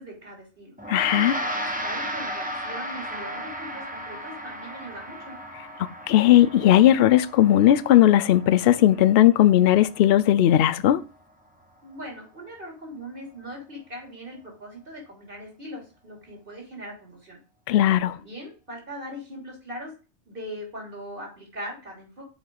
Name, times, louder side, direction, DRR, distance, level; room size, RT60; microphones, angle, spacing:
voice 1, 0.0-0.8 1.4-5.4 11.8-17.4 18.1-19.9 20.3-22.2, equal, 50° right, 3.4 m, -40 dB
Gong, 0.8-10.4, equal, 10° right, 1.1 m, -35 dB
voice 2, 0.9-1.4 5.8-11.0 17.7-18.2, left 12 dB, 65° left, 0.7 m, -18 dB
7.9 x 4.8 x 3.9 m
omnidirectional pair, 1.2 m